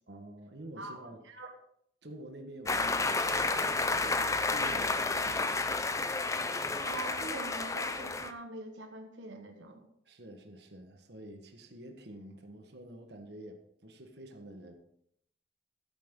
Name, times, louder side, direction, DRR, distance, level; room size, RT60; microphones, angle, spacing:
voice 1, 0.1-1.2 2.0-5.4 10.0-14.8, right 1 dB, 65° right, 4 dB, 1.4 m, -48 dB
voice 2, 0.8-1.5 6.8-9.9, right 2 dB, 85° right, 4 dB, 1.3 m, -43 dB
sound 1, 2.7-8.3, left 3 dB, 15° left, 0.5 m, -31 dB
14.0 x 8.1 x 3.8 m, 0.71 s
head